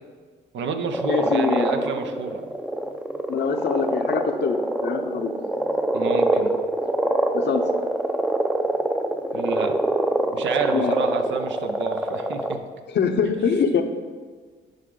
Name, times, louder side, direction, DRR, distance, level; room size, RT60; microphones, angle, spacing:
voice 1, 0.5-2.5 5.9-6.5 9.3-9.7 10.3-12.6 13.2-13.3, right 5 dB, 70° right, 7 dB, 0.8 m, -29 dB
sound 1, 0.9-12.6, right 1 dB, 5° right, 0.6 m, -25 dB
voice 2, 1.1-1.8 3.3-5.4 7.3-7.6 10.7-10.9 12.9-13.8, left 6 dB, 60° left, 7 dB, 0.8 m, -24 dB
10.5 x 5.0 x 3.8 m, 1.5 s
cardioid pair, 90°, 20 cm